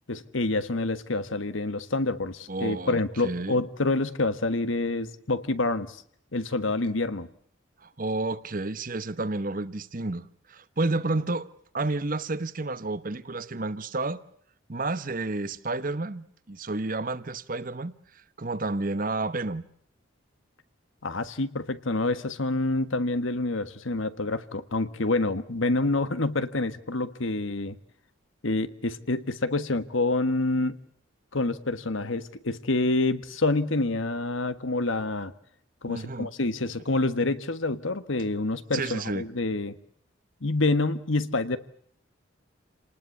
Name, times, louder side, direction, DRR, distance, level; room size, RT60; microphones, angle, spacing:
voice 1, 0.1-6.0 6.3-7.3 21.0-27.8 28.4-30.8 31.3-35.3 35.8-39.7 40.4-41.6, left 2 dB, 80° left, 1.5 m, -27 dB
voice 2, 2.5-3.6 7.8-11.5 11.7-14.2 14.7-19.6 35.9-36.3 38.7-39.2, right 2 dB, 45° right, 1.0 m, -31 dB
28.5 x 19.5 x 8.4 m
head